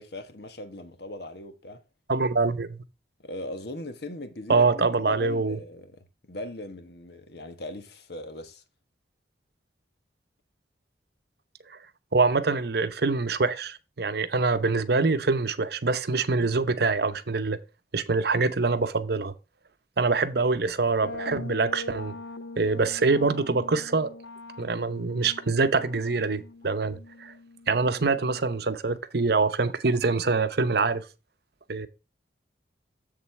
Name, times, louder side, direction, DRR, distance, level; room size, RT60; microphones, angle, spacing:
voice 1, 0.0-1.8 3.2-8.6, left 1 dB, 60° left, 1.2 m, -39 dB
voice 2, 2.1-2.8 4.5-5.6 11.7-11.8 12.1-17.6 17.9-19.3 20.0-22.1 22.6-24.1 24.6-27.3 27.7-31.0 31.7-31.9, right 3 dB, 60° right, 0.8 m, -25 dB
sound 1, 21.0-28.7, left 2 dB, 80° left, 0.7 m, -42 dB
7.5 x 7.2 x 3.3 m
head